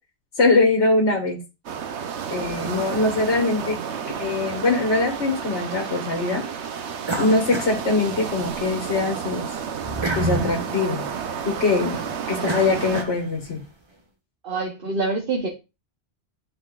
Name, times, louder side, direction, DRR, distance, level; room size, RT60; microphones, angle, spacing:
voice 1, 0.4-1.4 2.3-3.8 4.2-6.4 7.2-9.5 10.1-11.0 11.4-13.6, left 3 dB, 75° left, -1 dB, 1.8 m, -22 dB
sound 1, 1.7-13.0, right 7 dB, 75° right, 1.1 m, -31 dB
sound 2, 7.0-8.6 9.0-13.6, right 2 dB, 25° right, 1.0 m, -30 dB
voice 2, 14.4-15.5, right 3 dB, 50° right, 1 dB, 1.2 m, -25 dB
10.5 x 4.1 x 2.4 m, 0.27 s
omnidirectional pair, 1.2 m